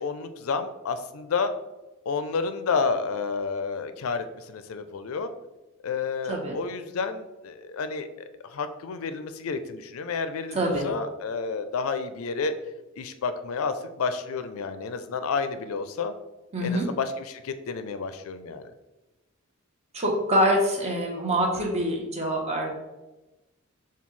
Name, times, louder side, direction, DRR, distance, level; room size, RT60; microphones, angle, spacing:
voice 1, 0.0-1.5 2.1-5.3 5.8-8.1 8.4-12.5 13.0-16.1 16.6-18.6, left 5 dB, 75° left, 10 dB, 0.4 m, -30 dB
voice 2, 10.5-10.8 16.5-16.9 19.9-22.7, equal, 30° right, 0 dB, 0.8 m, -25 dB
6.9 x 2.3 x 3.1 m, 1.1 s
head